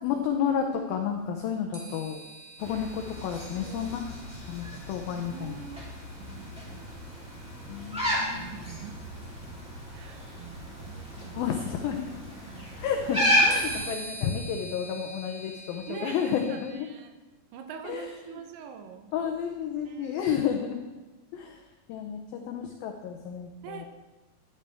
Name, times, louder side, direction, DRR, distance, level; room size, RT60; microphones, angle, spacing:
voice 1, 0.0-2.2 2.6-4.0 4.5-5.6 7.7-8.5 11.3-12.1 12.8-16.7 17.8-18.1 19.1-20.8 21.3-21.6 21.9-22.2 22.4-23.9, left 8 dB, 85° left, 4 dB, 2.0 m, -31 dB
sound 1, 1.7-7.4 8.7-8.8 13.5-16.7, right 2 dB, 30° right, 1.5 m, -45 dB
sound 2, 2.6-13.9, equal, ahead, 2.0 m, -32 dB
voice 2, 3.2-4.0 5.2-5.8 6.2-7.0 8.4-9.0 9.9-11.5 12.5-13.0 15.9-17.1 17.5-19.1 19.9-20.2 23.6-23.9, right 7 dB, 85° right, 5 dB, 3.2 m, -44 dB
11.5 x 11.0 x 3.5 m, 1.2 s
omnidirectional pair, 5.1 m